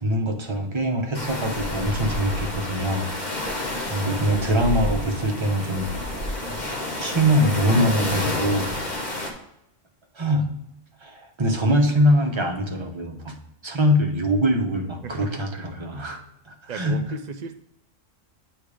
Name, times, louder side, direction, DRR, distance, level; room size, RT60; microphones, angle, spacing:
voice 1, 0.0-3.1 3.9-5.9 7.0-9.1 10.1-10.5 11.0-13.3 13.6-16.2 16.5-17.0, equal, 25° right, 2 dB, 0.8 m, -23 dB
sound 1, 1.1-9.3, left 1 dB, 40° left, 1.1 m, -29 dB
voice 2, 15.0-15.4 16.7-17.5, right 5 dB, 80° right, 7 dB, 0.3 m, -34 dB
8.5 x 3.3 x 4.9 m, 0.82 s
omnidirectional pair, 1.3 m